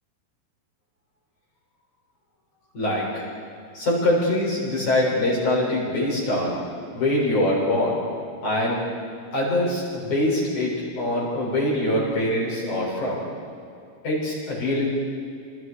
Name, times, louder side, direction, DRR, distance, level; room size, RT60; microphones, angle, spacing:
voice 1, 2.7-3.2 3.7-6.5 6.9-8.0 8.4-8.8 9.3-13.2 14.0-14.8, left 1 dB, 35° left, -6 dB, 8.9 m, -23 dB
29.0 x 29.0 x 5.1 m, 2.5 s
omnidirectional pair, 5.8 m